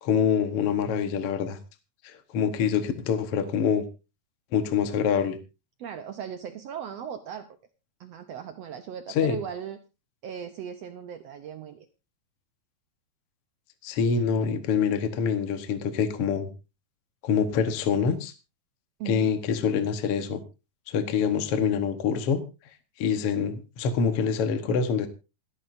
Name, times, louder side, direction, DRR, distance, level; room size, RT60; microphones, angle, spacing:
voice 1, 0.0-1.6 2.0-3.8 4.5-5.4 9.1-9.4 13.8-16.5 17.2-18.3 19.1-20.4 20.9-22.4 23.0-25.1, left 6 dB, 55° left, 9 dB, 1.8 m, -25 dB
voice 2, 5.8-7.5 8.0-9.8 10.2-11.9 19.0-19.3, right 8 dB, 80° right, 8 dB, 1.4 m, -37 dB
27.5 x 9.3 x 2.6 m, 0.29 s
omnidirectional pair, 4.0 m